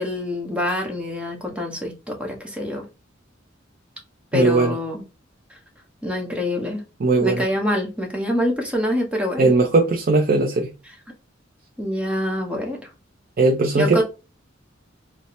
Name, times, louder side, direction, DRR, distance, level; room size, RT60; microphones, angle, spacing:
voice 1, 0.0-2.9 4.3-5.0 6.0-6.8 7.2-9.5 11.8-12.8 13.8-14.0, left 1 dB, 5° right, 0.9 m, -25 dB
voice 2, 4.3-4.8 7.0-7.5 9.4-10.7 13.4-14.0, right 3 dB, 50° right, 0.5 m, -18 dB
4.1 x 2.0 x 3.0 m
head